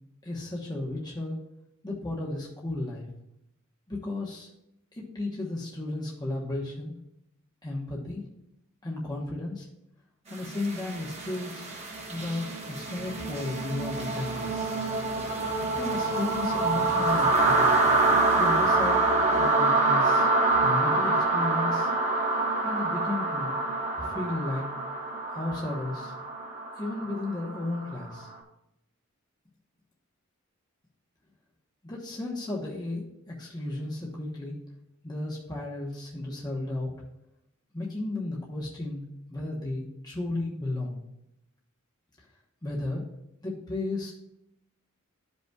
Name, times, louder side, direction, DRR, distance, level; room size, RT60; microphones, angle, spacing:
voice 1, 0.2-1.4 1.8-3.1 3.9-4.5 4.9-7.0 7.6-8.2 8.8-9.7 10.3-11.7 12.1-14.7 15.7-17.7 18.3-19.0 19.4-21.9 22.6-23.5 24.0-24.7 25.3-26.1 26.8-28.3 31.8-34.6 35.0-36.9 37.7-41.0 42.2-42.3 42.6-43.1 43.4-44.1, left 2 dB, 20° left, -4 dB, 1.0 m, -34 dB
sound 1, 10.4-28.2, right 2 dB, 30° right, 1.3 m, -26 dB
13.0 x 5.3 x 2.3 m, 0.83 s
head